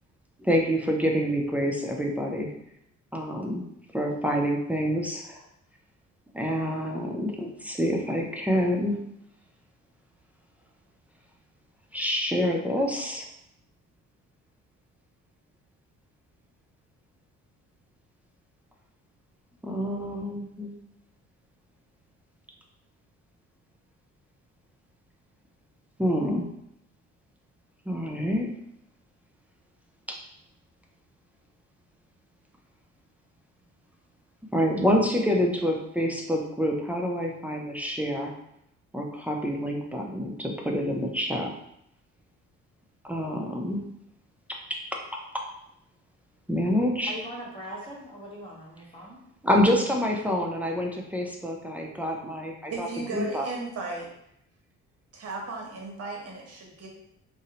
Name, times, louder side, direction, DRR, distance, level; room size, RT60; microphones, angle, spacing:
voice 1, 0.4-2.5 3.1-3.6 3.9-5.4 6.3-9.0 11.9-13.3 19.6-20.7 26.0-26.5 27.9-28.5 30.1-30.2 34.5-38.3 38.9-41.5 43.0-43.8 44.5-44.8 45.3-45.4 46.5-47.1 49.4-52.9 53.1-53.5, equal, 5° right, 0 dB, 0.3 m, -27 dB
voice 2, 47.1-49.2, equal, 20° left, -4 dB, 0.9 m, -40 dB
voice 3, 52.7-54.1 55.1-56.9, right 3 dB, 55° right, -1 dB, 0.9 m, -35 dB
2.6 x 2.0 x 2.8 m, 0.76 s
cardioid pair, 90°, 30 cm